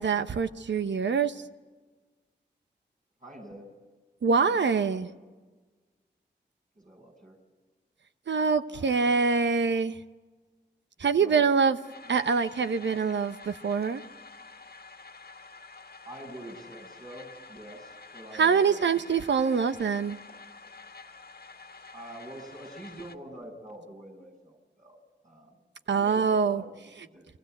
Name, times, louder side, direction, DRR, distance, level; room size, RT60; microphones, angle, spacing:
voice 1, 0.0-1.4 4.2-5.1 8.3-10.0 11.0-11.8 12.1-14.0 18.4-20.2 25.9-26.6, right 5 dB, 75° right, 11 dB, 1.0 m, -25 dB
voice 2, 3.2-3.7 4.5-5.2 6.8-7.4 8.7-9.2 11.2-11.5 12.1-12.2 16.0-19.3 21.9-25.0 25.2-25.6 25.9-27.3, right 1 dB, 45° right, -1 dB, 7.8 m, -46 dB
sound 1, 11.8-23.2, left 4 dB, 55° left, 1.7 m, -49 dB
29.5 x 23.0 x 8.0 m, 1.3 s
cardioid pair, 40°, 19 cm